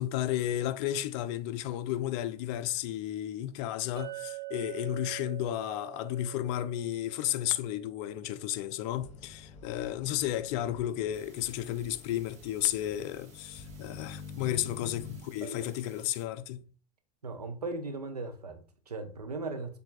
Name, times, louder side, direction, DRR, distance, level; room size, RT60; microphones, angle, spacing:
voice 1, 0.0-16.7, left 12 dB, 50° left, 0.5 m, -33 dB
Chink clink, 4.0-8.2, right 19 dB, 20° right, 0.5 m, -45 dB
sound 1, 9.0-15.2, left 4 dB, 35° left, 1.3 m, -48 dB
sound 2, 11.1-16.3, right 5 dB, 35° right, 1.1 m, -60 dB
voice 2, 17.2-19.8, right 3 dB, 90° right, 0.6 m, -38 dB
7.2 x 2.6 x 2.4 m
figure-of-eight pair, 80°, 19 cm